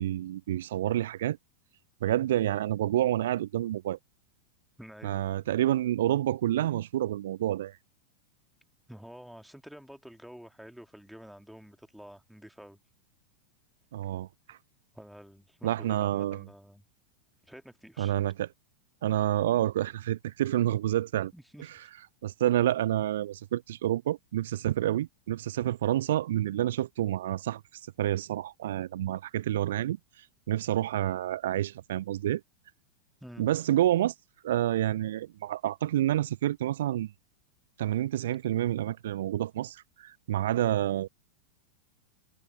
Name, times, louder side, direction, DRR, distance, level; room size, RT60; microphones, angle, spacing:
voice 1, 0.0-1.4 2.0-4.0 5.0-7.8 13.9-14.6 15.6-16.4 18.0-18.5 19.0-21.3 22.2-27.6 28.0-30.0 30.5-32.4 33.4-34.1 34.4-37.1 37.8-41.1, right 13 dB, 60° right, 0.8 m, -28 dB
voice 2, 4.8-5.3 8.9-12.8 14.9-16.8 17.4-18.1 21.3-21.7 33.2-33.5, equal, ahead, 2.4 m, -49 dB
figure-of-eight pair, 90°, 0 cm